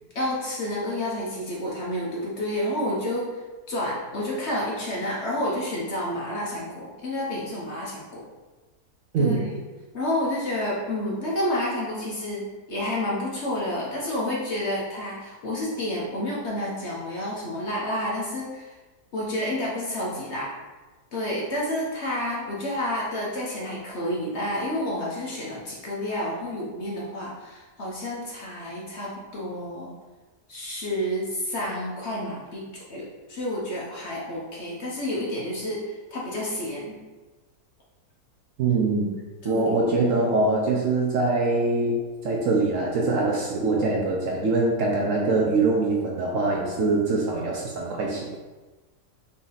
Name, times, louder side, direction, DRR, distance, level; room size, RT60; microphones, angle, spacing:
voice 1, 0.1-3.4 3.7-8.2 9.2-9.6 9.9-18.7 19.1-20.5 21.1-29.9 30.5-37.0 39.4-39.7 46.8-47.0, left 1 dB, 55° left, -4 dB, 0.9 m, -30 dB
voice 2, 38.6-39.1 39.4-48.4, right 3 dB, 65° right, -1 dB, 0.9 m, -23 dB
4.0 x 2.8 x 3.8 m, 1.2 s
omnidirectional pair, 1.7 m